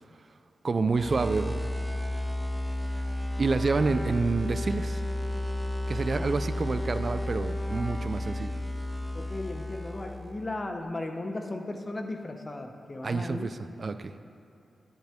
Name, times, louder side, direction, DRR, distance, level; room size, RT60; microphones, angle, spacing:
voice 1, 0.6-1.5 2.9-3.0 3.4-5.0 5.9-8.5 13.0-14.1, right 4 dB, 45° right, 11 dB, 0.3 m, -28 dB
sound 1, 0.9-10.4, left 1 dB, ahead, 0.7 m, -32 dB
voice 2, 9.1-13.5, left 2 dB, 30° left, 5 dB, 0.8 m, -36 dB
10.5 x 10.5 x 3.5 m, 2.8 s
cardioid pair, 85°, 0 cm